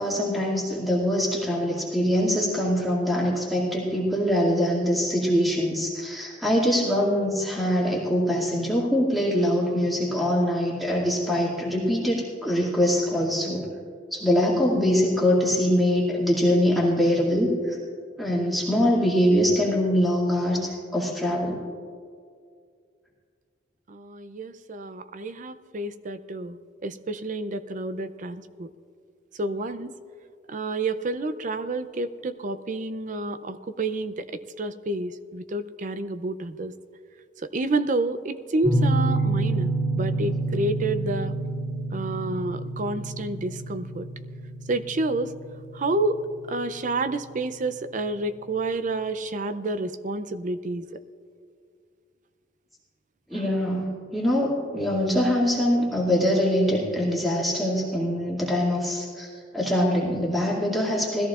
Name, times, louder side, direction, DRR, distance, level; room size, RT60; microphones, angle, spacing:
voice 1, 0.0-13.6 14.1-17.8 18.2-21.6 53.3-61.3, equal, ahead, -7 dB, 2.3 m, -23 dB
voice 2, 23.9-28.7 29.4-29.9 30.5-34.2 34.6-36.7 37.5-39.7 40.0-41.3 41.9-44.1 44.7-45.3 45.7-46.2 46.5-50.8, right 2 dB, 45° right, 11 dB, 0.5 m, -29 dB
sound 1, 38.6-47.3, right 2 dB, 15° right, 2.2 m, -28 dB
20.5 x 14.0 x 2.5 m, 2.2 s
head